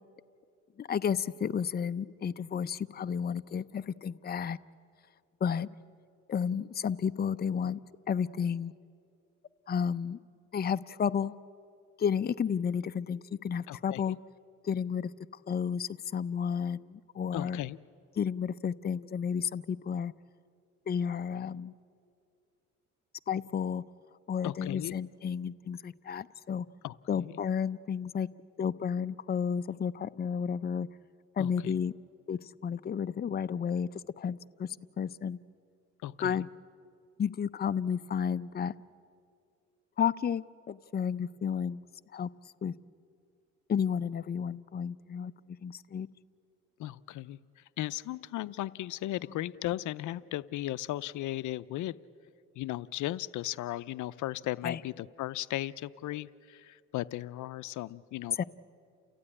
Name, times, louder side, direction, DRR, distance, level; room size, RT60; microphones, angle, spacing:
voice 1, 0.8-4.6 5.4-5.7 6.3-7.8 8.1-8.7 9.7-10.2 10.5-11.3 12.0-14.2 14.6-15.1 15.5-17.6 18.2-20.1 20.9-21.7 23.3-23.8 24.3-26.7 27.1-28.3 28.6-30.9 31.4-31.9 32.3-33.9 34.2-35.4 36.2-36.5 37.2-38.7 40.0-41.8 42.1-42.3 42.6-42.7 43.7-46.1 54.6-54.8 58.4-58.5, left 7 dB, 30° left, 13 dB, 0.6 m, -32 dB
voice 2, 13.7-14.2 17.3-17.8 24.4-25.0 26.8-27.3 31.4-31.7 36.0-36.5 46.8-52.0 52.6-58.4, left 15 dB, 75° left, 16 dB, 0.5 m, -36 dB
29.5 x 15.0 x 9.8 m, 2.4 s
cardioid pair, 90°, 30 cm